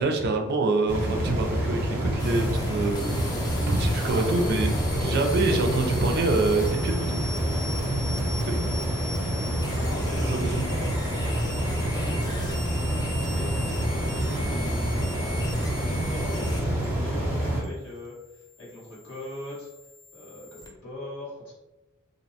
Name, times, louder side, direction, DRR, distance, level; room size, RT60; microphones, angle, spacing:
voice 1, 0.0-3.0 3.7-4.7 5.0-7.2 8.4-8.7 10.1-10.7, right 3 dB, 50° right, 4 dB, 0.4 m, -26 dB
sound 1, 0.9-17.6, right 1 dB, 10° right, 0.8 m, -27 dB
sound 2, 2.2-20.7, left 2 dB, 20° left, 0.4 m, -39 dB
voice 2, 4.0-4.6 4.9-5.6 9.7-10.9 11.2-12.2 13.3-19.7 20.1-21.5, left 1 dB, 85° left, -6 dB, 1.3 m, -39 dB
2.6 x 2.1 x 2.7 m, 1.1 s
head